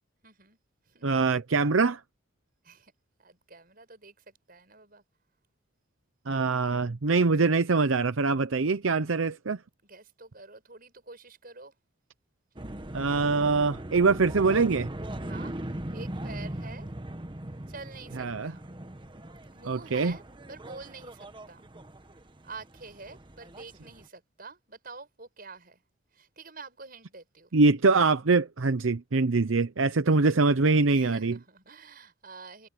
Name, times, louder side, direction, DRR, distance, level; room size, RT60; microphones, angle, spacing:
voice 1, 0.2-0.6 0.9-1.0 2.6-2.9 3.2-5.0 9.8-11.7 15.3-15.6 15.9-16.9 17.7-18.7 19.5-21.6 22.4-25.8 26.1-27.5 30.9-32.7, right 4 dB, 45° right, 6.6 m, -47 dB
voice 2, 1.0-2.0 6.3-9.6 12.9-14.9 18.2-18.5 19.7-20.2 27.5-31.4, right 4 dB, 80° right, 0.8 m, -24 dB
sound 1, 12.6-24.1, right 1 dB, 25° right, 1.2 m, -40 dB
head